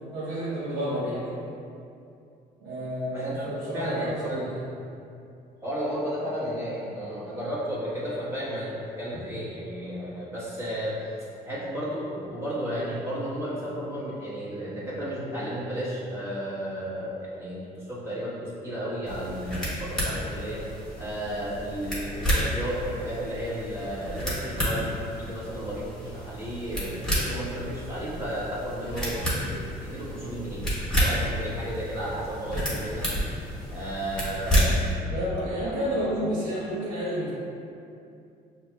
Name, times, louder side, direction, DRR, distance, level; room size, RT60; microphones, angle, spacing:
voice 1, 0.0-1.3 2.6-4.7 35.1-37.3, equal, 80° right, -11 dB, 1.0 m, -30 dB
voice 2, 3.1-4.5 5.6-11.0 11.4-20.6 21.0-30.7 31.0-33.1 33.7-34.8 35.6-35.8, equal, 15° right, -9 dB, 1.2 m, -33 dB
sound 1, 19.1-34.9, equal, 5° left, 1.4 m, -30 dB
6.1 x 2.9 x 2.3 m, 2.6 s
cardioid pair, 110°, 17 cm